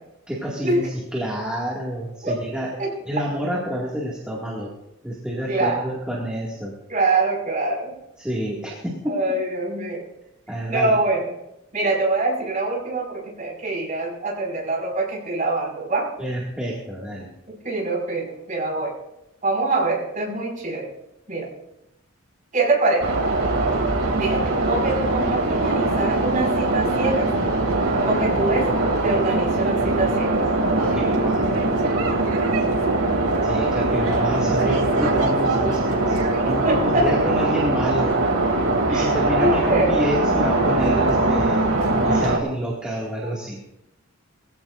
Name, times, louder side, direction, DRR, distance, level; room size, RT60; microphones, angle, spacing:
voice 1, 0.3-2.8 3.0-4.7 5.0-6.8 8.2-9.2 10.5-11.0 16.2-17.3 30.7-31.5 33.4-38.1 38.9-41.7 42.0-43.6, equal, 5° right, -6 dB, 2.1 m, -28 dB
voice 2, 5.5-5.9 6.9-7.9 9.1-10.1 10.7-11.3 11.7-16.1 17.5-18.9 19.4-20.9 21.3-21.5 22.5-23.1 24.2-27.3 28.0-28.7 29.0-30.3 36.4-37.1 38.9-39.1 39.4-39.9 42.1-42.2 43.2-43.3, right 2 dB, 40° right, -2 dB, 5.5 m, -24 dB
sound 1, 23.0-42.4, right 2 dB, 85° right, 2.8 m, -21 dB
21.5 x 15.5 x 2.6 m, 0.87 s
head